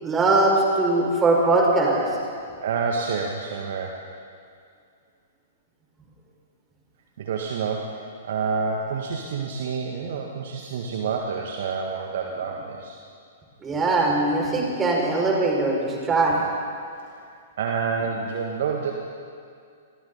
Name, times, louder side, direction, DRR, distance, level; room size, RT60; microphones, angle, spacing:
voice 1, 0.0-2.2 13.6-16.4, right 2 dB, 15° right, -2 dB, 6.2 m, -21 dB
voice 2, 2.6-4.0 7.2-8.0 8.2-13.0 17.0-17.1 17.6-19.0, right 5 dB, 55° right, 1 dB, 2.0 m, -28 dB
29.5 x 23.0 x 4.3 m, 2.3 s
figure-of-eight pair, 110°, 0 cm